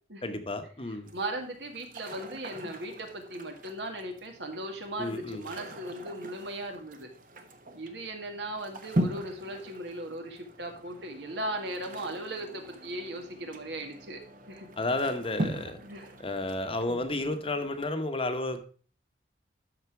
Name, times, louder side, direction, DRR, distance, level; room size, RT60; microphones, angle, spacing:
voice 1, 0.2-1.1 5.0-5.4 14.8-15.8 16.2-18.6, left 2 dB, 30° left, 7 dB, 1.0 m, -32 dB
sound 1, 1.0-17.9, right 1 dB, 45° right, 1.1 m, -40 dB
voice 2, 1.1-7.1 7.7-14.2 14.5-14.7 15.8-16.1 16.9-17.0, right 1 dB, 75° right, 4 dB, 2.0 m, -37 dB
13.0 x 4.4 x 4.6 m, 0.41 s
head